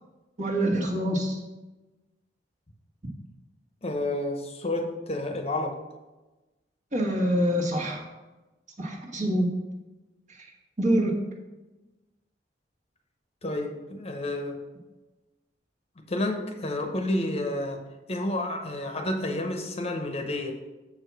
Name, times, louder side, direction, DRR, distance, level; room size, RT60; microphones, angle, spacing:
voice 1, 0.4-1.4 6.9-8.1 8.8-9.5 10.3-10.5 10.8-11.2, right 1 dB, 45° right, 0 dB, 1.4 m, -25 dB
voice 2, 3.8-5.8 13.4-14.6 16.0-17.8 18.1-20.5, left 1 dB, 35° left, 4 dB, 0.8 m, -30 dB
7.3 x 4.8 x 6.0 m, 1.1 s
head